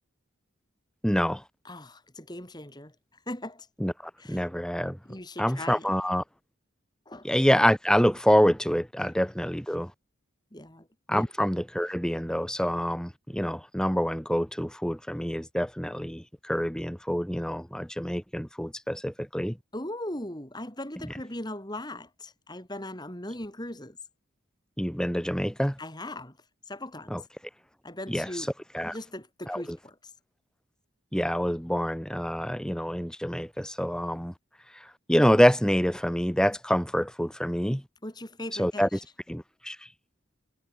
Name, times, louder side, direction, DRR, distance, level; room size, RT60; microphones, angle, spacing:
voice 1, 1.0-1.4 3.8-5.0 5.4-6.2 7.2-9.9 11.1-19.6 24.8-25.8 27.1-27.2 28.1-28.5 28.7-29.0 29.5-29.8 31.1-34.3 35.1-37.8 38.6-38.9 39.3-39.8, equal, 5° left, 1.9 m, -26 dB
voice 2, 1.6-2.9 3.3-3.7 4.2-4.4 5.1-5.9 7.1-7.3 10.5-11.3 19.7-24.0 25.8-26.4 26.7-27.2 27.8-28.5 28.8-30.1 38.0-38.9, left 1 dB, 20° left, 4.1 m, -39 dB
head